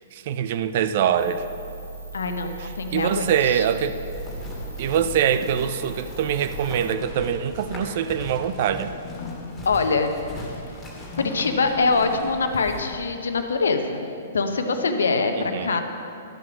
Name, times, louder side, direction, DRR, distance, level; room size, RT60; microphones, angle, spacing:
voice 1, 0.1-1.5 2.6-4.0 4.8-8.9 15.3-15.8, right 8 dB, 45° right, 11 dB, 0.5 m, -24 dB
sound 1, 1.2-6.9, right 3 dB, 80° right, 2.5 m, -38 dB
voice 2, 2.1-3.6 9.6-10.2 11.1-14.1 14.3-15.8, left 4 dB, 65° left, 6 dB, 0.9 m, -24 dB
sound 2, 3.5-7.8 8.4-12.3, left 4 dB, 40° left, 1.3 m, -42 dB
sound 3, 3.9-12.9, left 1 dB, 10° left, 2.3 m, -39 dB
11.5 x 7.7 x 5.9 m, 2.6 s
figure-of-eight pair, 110°, 0 cm